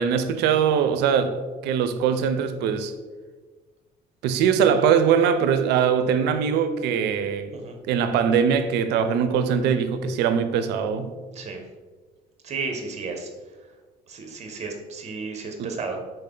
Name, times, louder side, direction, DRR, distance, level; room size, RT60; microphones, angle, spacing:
voice 1, 0.0-1.4 1.6-2.9 4.2-7.5 7.8-11.1 15.6-15.7, right 7 dB, 85° right, 0.4 m, -22 dB
voice 2, 12.4-13.3 14.1-16.0, right 4 dB, 40° right, 0.9 m, -33 dB
4.3 x 3.2 x 3.7 m
cardioid pair, 110°, 17 cm